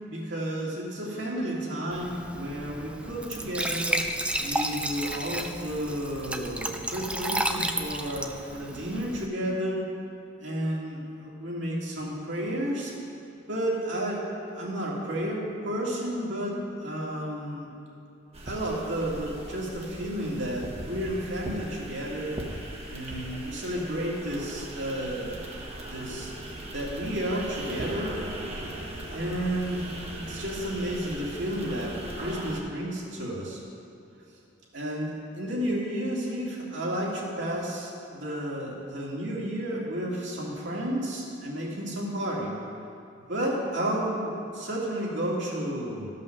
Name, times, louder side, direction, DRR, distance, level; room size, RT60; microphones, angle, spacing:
voice 1, 0.1-4.0 4.4-9.8 10.4-12.9 13.5-14.2 14.5-17.7 18.4-22.3 22.9-25.5 25.9-26.3 26.7-28.1 29.1-33.6 34.7-42.5 43.3-46.1, right 1 dB, 65° right, -4 dB, 2.2 m, -32 dB
Glass / Trickle dribble / Fill (with liquid), 1.9-9.3, right 1 dB, 5° right, 0.4 m, -32 dB
sound 1, 18.3-32.6, right 1 dB, 30° right, 1.1 m, -39 dB
13.0 x 5.5 x 6.4 m, 2.7 s
head